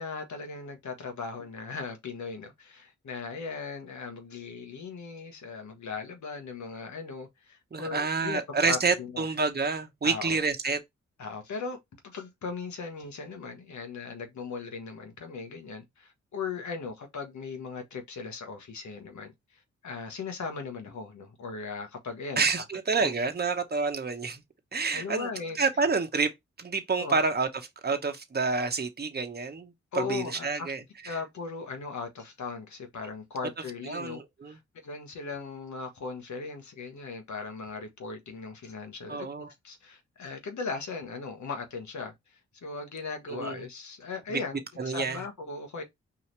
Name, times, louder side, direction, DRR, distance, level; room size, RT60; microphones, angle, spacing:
voice 1, 0.0-8.4 8.7-9.2 10.0-10.4 11.2-11.8 12.0-22.4 23.0-23.1 24.9-25.6 27.0-27.2 29.9-30.7 31.0-34.2 34.5-39.3 39.6-45.8, left 4 dB, 70° left, 1.4 m, -38 dB
voice 2, 7.7-10.8 22.4-24.4 24.7-25.3 25.5-26.3 26.6-27.5 27.8-31.1 33.9-34.6 39.1-39.5 43.3-43.6 44.3-44.4 44.8-45.2, right 4 dB, 35° right, 1.0 m, -28 dB
4.8 x 2.8 x 3.3 m
supercardioid pair, 40°, 30 cm